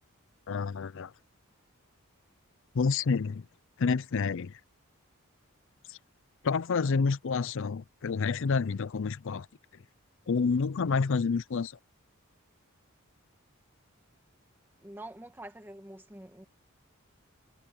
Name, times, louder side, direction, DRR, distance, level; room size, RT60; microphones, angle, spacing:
voice 1, 0.5-1.1 2.7-3.5 3.8-4.5 5.9-6.0 6.4-9.5 10.3-11.7, left 5 dB, 60° left, 0.5 m, -28 dB
voice 2, 14.8-16.4, right 1 dB, 10° right, 1.4 m, -46 dB
head